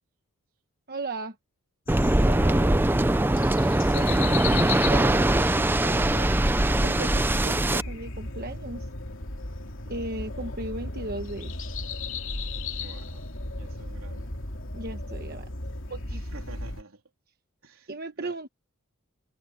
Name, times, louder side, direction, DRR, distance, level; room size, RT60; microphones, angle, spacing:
voice 1, 0.9-1.4 3.9-6.3 6.8-8.9 9.9-11.7 14.7-15.5 15.9-16.2 17.9-18.5, right 2 dB, 45° right, 1.2 m, -36 dB
sound 1, 1.9-16.8, left 3 dB, 60° left, 3.2 m, -35 dB
Waves surf, 1.9-7.8, right 1 dB, 10° right, 0.5 m, -22 dB
voice 2, 2.2-2.9 12.8-13.2 13.5-14.3 16.3-17.0 17.6-17.9 18.2-18.3, right 3 dB, 75° right, 3.6 m, -45 dB
head